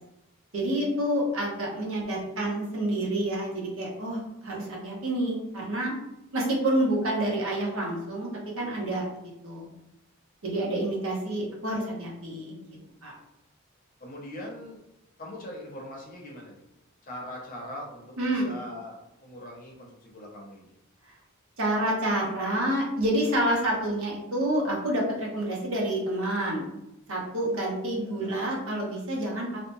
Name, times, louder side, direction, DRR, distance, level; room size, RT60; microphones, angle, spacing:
voice 1, 0.5-5.9 6.3-9.1 9.4-9.7 10.4-12.6 13.0-13.1 18.2-18.5 21.6-26.6 27.1-29.7, right 1 dB, 70° right, -2 dB, 0.8 m, -28 dB
voice 2, 14.0-14.8 15.2-16.6 17.0-20.7 28.0-28.4, left 1 dB, 40° left, -2 dB, 0.7 m, -41 dB
2.8 x 2.1 x 2.6 m, 0.86 s
head